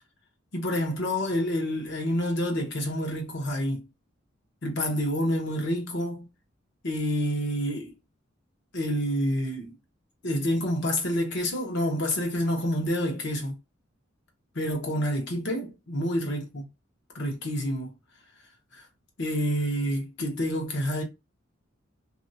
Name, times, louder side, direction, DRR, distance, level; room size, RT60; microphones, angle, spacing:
voice 1, 0.5-3.9 4.6-6.3 6.8-7.9 8.7-9.8 10.2-13.6 14.5-16.6 17.1-17.9 18.7-18.8 19.2-21.0, equal, 65° left, 1.0 m, -28 dB
2.7 x 2.2 x 2.7 m
head